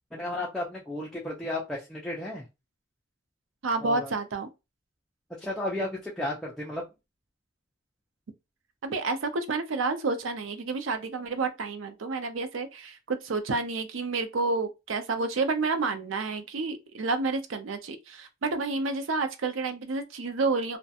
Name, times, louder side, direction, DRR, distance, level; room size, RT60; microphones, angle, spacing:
voice 1, 0.1-2.4 3.8-4.1 5.4-6.8, left 1 dB, ahead, 0.4 m, -33 dB
voice 2, 3.6-4.5 8.8-20.8, right 3 dB, 85° right, 0.5 m, -30 dB
2.4 x 2.1 x 2.7 m
head